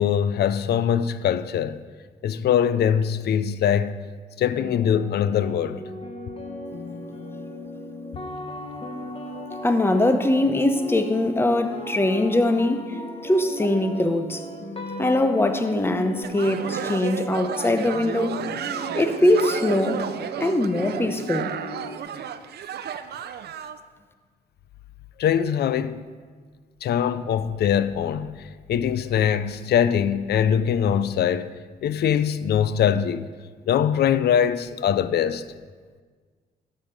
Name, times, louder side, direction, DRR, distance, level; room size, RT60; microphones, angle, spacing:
voice 1, 0.0-1.8 2.2-4.0 4.4-5.8 25.2-26.1 26.8-33.3 33.7-35.4, left 8 dB, 75° left, 0.4 m, -22 dB
sound 1, 4.5-22.0, left 1 dB, 35° left, 1.2 m, -37 dB
voice 2, 9.6-14.4 15.0-18.4 18.9-20.0 20.4-21.6, left 1 dB, 15° left, 0.7 m, -22 dB
sound 2, 16.2-23.8, right 8 dB, 75° right, 0.5 m, -32 dB
12.5 x 5.7 x 5.1 m
cardioid pair, 105°, 17 cm